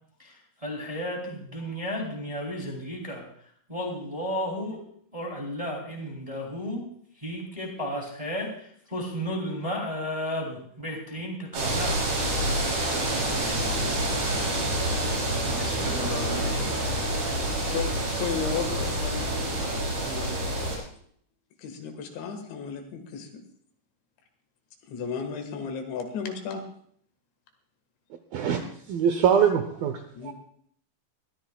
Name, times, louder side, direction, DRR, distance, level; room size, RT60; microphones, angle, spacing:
voice 1, 0.2-3.2 3.7-4.8 5.1-6.8 7.2-12.0 13.2-13.3 15.4-16.8, equal, 10° right, 0 dB, 1.7 m, -33 dB
sound 1, 11.5-20.8, right 1 dB, 55° right, 6.7 m, -27 dB
voice 2, 13.3-15.7 17.3-20.4 21.6-23.4 24.9-26.6 30.1-30.3, left 6 dB, 80° left, 5 dB, 4.0 m, -36 dB
voice 3, 28.9-30.3, right 8 dB, 75° right, 6 dB, 2.2 m, -23 dB
22.0 x 13.5 x 2.3 m, 0.63 s
omnidirectional pair, 5.1 m